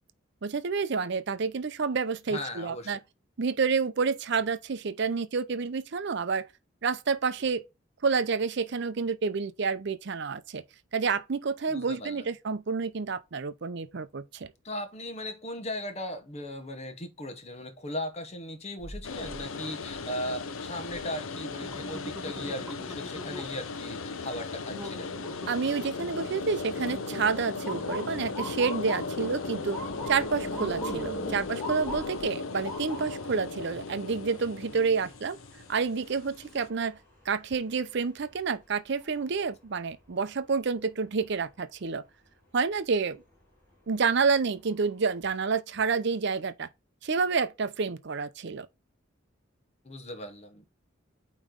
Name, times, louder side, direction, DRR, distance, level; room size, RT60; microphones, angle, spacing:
voice 1, 0.4-3.0 3.4-6.5 6.8-7.6 8.0-10.6 10.9-14.5 25.5-29.8 30.1-35.4 35.7-37.0 37.3-42.0 42.5-43.2 43.9-46.7 47.0-48.7, right 5 dB, 60° right, 0.6 m, -29 dB
voice 2, 2.3-3.0 11.7-12.2 14.6-25.1 49.8-50.6, left 1 dB, 35° left, 1.0 m, -38 dB
sound 1, 18.8-19.4 19.8-20.3 20.9-21.0 21.4-23.7 24.1-24.3 24.7-32.2 32.7-32.8, right 2 dB, 10° right, 0.9 m, -43 dB
sound 2, 19.0-36.7, left 4 dB, 90° left, 0.6 m, -37 dB
Motor vehicle (road) / Siren, 27.7-39.6 40.0-40.4 41.2-41.5 43.4-43.6 44.2-44.3 44.7-45.4, left 1 dB, 10° left, 3.3 m, -44 dB
8.7 x 3.1 x 3.7 m
head